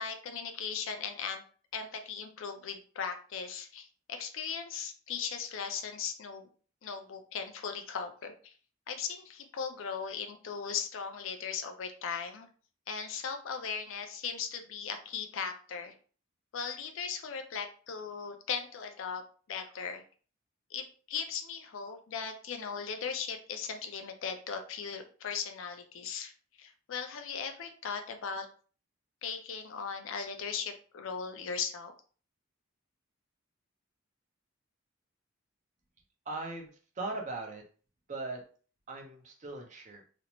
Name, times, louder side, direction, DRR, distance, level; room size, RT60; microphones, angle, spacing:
voice 1, 0.0-1.4 1.7-6.5 6.8-8.5 8.9-12.5 12.9-15.9 16.5-19.2 19.5-20.0 20.7-26.3 26.6-28.5 29.2-31.9, left 6 dB, 75° left, 6 dB, 0.4 m, -38 dB
voice 2, 36.3-37.6 38.1-38.4 38.9-40.0, right 2 dB, 35° right, 2 dB, 0.4 m, -39 dB
2.5 x 2.0 x 2.9 m, 0.40 s
head